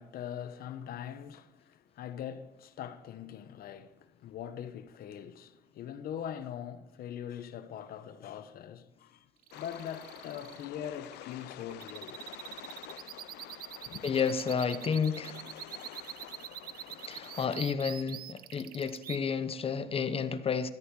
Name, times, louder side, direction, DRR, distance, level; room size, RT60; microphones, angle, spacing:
voice 1, 0.0-12.2 13.9-14.0, left 9 dB, 65° left, 1.0 m, -42 dB
sound 1, 9.4-19.2, right 12 dB, 60° right, 0.6 m, -45 dB
sound 2, 9.5-17.6, left 14 dB, 80° left, 0.6 m, -48 dB
voice 2, 14.0-15.4 17.0-20.7, left 6 dB, 35° left, 0.9 m, -31 dB
13.5 x 10.0 x 4.8 m
cardioid pair, 110°, 17 cm